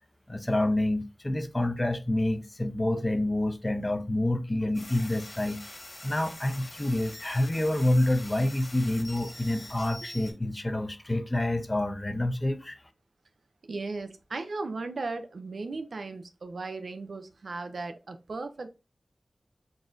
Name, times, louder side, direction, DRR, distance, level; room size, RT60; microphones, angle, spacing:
voice 1, 0.3-5.6 6.0-12.8, left 1 dB, 20° left, 0.5 m, -28 dB
sound 1, 4.7-10.3, left 1 dB, 45° left, 1.4 m, -45 dB
voice 2, 13.7-18.7, right 3 dB, 75° right, 0.6 m, -36 dB
4.0 x 3.6 x 2.5 m
wide cardioid pair, 85°, 0 cm